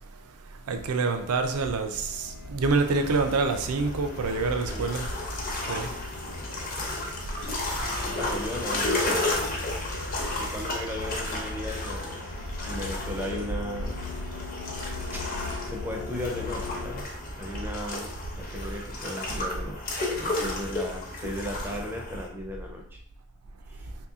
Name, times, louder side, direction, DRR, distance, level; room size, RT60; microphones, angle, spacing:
voice 1, 0.7-5.1 5.7-5.9, right 3 dB, 85° right, 0.5 m, -26 dB
sound 1, 1.9-17.0, left 3 dB, 90° left, 0.5 m, -39 dB
sound 2, 2.7-22.3, left 2 dB, 40° left, 0.7 m, -33 dB
voice 2, 6.2-7.2 8.1-9.6 10.4-12.3 12.6-14.0 15.1-15.2 15.7-17.0 17.4-23.0 23.7-23.9, equal, 10° right, 0.4 m, -36 dB
sound 3, 7.7-13.4, left 1 dB, 60° left, 1.0 m, -44 dB
3.1 x 2.8 x 3.5 m
head